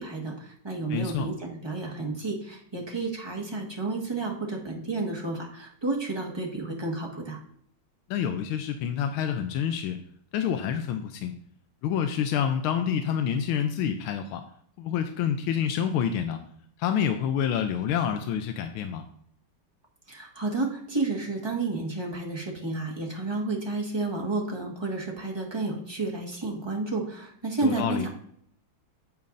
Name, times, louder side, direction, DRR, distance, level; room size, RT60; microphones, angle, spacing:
voice 1, 0.0-7.4 20.1-28.1, right 3 dB, 15° right, -1 dB, 1.4 m, -31 dB
voice 2, 0.9-1.3 8.1-10.0 10.3-11.3 11.8-14.4 14.8-16.4 16.8-19.0 27.6-28.1, left 8 dB, 85° left, 7 dB, 1.5 m, -27 dB
8.8 x 8.7 x 2.6 m, 0.66 s
omnidirectional pair, 2.3 m